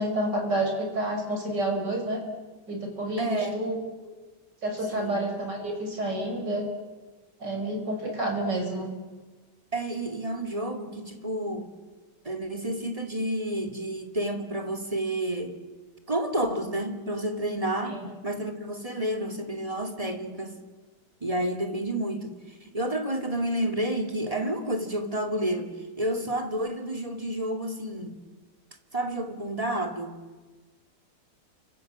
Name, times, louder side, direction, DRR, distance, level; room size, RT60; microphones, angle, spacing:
voice 1, 0.0-2.2 2.7-4.1 4.6-6.7 7.4-8.9 17.8-18.0, right 1 dB, 90° right, 3 dB, 6.4 m, -29 dB
voice 2, 3.2-3.6 4.9-5.2 9.7-11.7 12.2-15.6 16.1-18.0 18.2-20.6 21.2-25.7 26.0-28.1 28.9-30.2, right 1 dB, 20° right, 4 dB, 2.7 m, -30 dB
29.5 x 26.0 x 7.6 m, 1.3 s
omnidirectional pair, 1.8 m